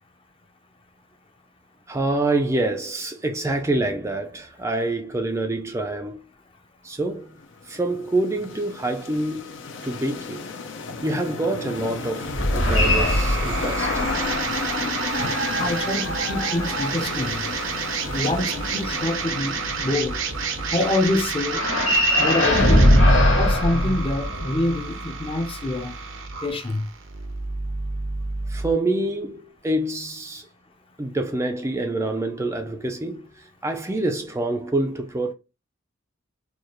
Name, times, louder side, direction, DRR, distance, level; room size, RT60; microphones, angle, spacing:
voice 1, 1.9-6.2 6.8-7.4 7.6-9.5 9.8-10.5 11.0-14.0 28.5-30.5 31.0-35.3, right 2 dB, 15° right, 0.4 m, -26 dB
sound 1, 7.4-21.9, left 4 dB, 70° left, 0.7 m, -33 dB
sound 2, 12.3-14.3 14.9-17.4 21.5-24.6, equal, 90° left, 1.8 m, -21 dB
sound 3, 12.7-28.7, right 5 dB, 80° right, 0.7 m, -30 dB
voice 2, 15.6-17.4 18.1-20.2 20.7-21.6 22.2-22.9 23.3-25.9 26.4-26.9, left 2 dB, 30° left, 0.6 m, -26 dB
4.7 x 2.3 x 3.0 m
head